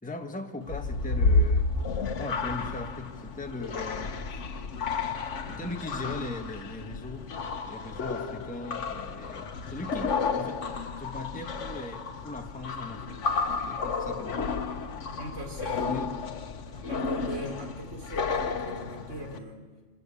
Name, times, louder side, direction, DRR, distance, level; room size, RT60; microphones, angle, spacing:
voice 1, 0.0-4.3 5.5-7.3 7.7-10.6 11.0-13.2 13.7-14.5 15.7-16.1, left 2 dB, 5° left, 4 dB, 1.3 m, -39 dB
sound 1, 0.7-19.4, left 4 dB, 70° left, 1.4 m, -31 dB
voice 2, 15.1-16.0 16.7-19.6, right 1 dB, 70° right, 3 dB, 3.6 m, -40 dB
25.5 x 18.5 x 8.6 m, 1.4 s
omnidirectional pair, 1.3 m